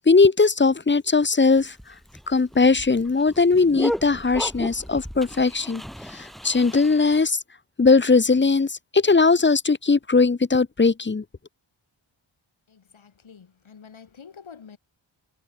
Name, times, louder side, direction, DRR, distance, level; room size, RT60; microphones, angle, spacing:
voice 1, 0.1-1.7 2.3-5.8 6.1-7.4 7.8-11.2, left 4 dB, 25° left, 0.8 m, -19 dB
Loud dog bark with echo and splash, 1.6-7.2, equal, ahead, 3.8 m, -35 dB
voice 2, 12.7-14.8, left 6 dB, 75° left, 7.4 m, -47 dB
wide cardioid pair, 85°, 47 cm